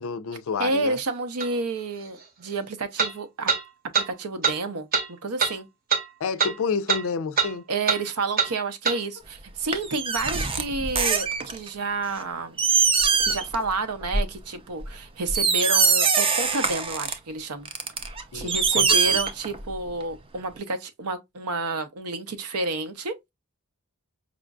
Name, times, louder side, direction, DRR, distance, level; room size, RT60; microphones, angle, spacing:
voice 1, 0.0-1.0 6.2-7.6 18.3-19.2, left 5 dB, 65° left, 0.4 m, -29 dB
voice 2, 0.6-3.5 3.9-4.9 5.2-5.7 7.7-12.6 13.3-17.7 18.3-23.1, right 3 dB, 80° right, 0.7 m, -30 dB
sound 1, 1.4-1.5 3.0-3.1 3.5-3.6 3.9-4.1 4.4-4.6 4.9-5.1 5.4-5.5 5.9-6.0 6.4-6.5 6.9-7.0 7.4-7.5 7.9-8.0 8.4-8.5 8.8-9.0, right 5 dB, 40° right, 0.8 m, -23 dB
sound 2, 9.7-11.7 12.2-12.3 12.6-13.6 13.9-14.2 14.8-14.9 15.3-17.1 17.7-19.7 20.0-20.1, right 5 dB, 25° right, 0.4 m, -23 dB
5.0 x 2.5 x 2.3 m
head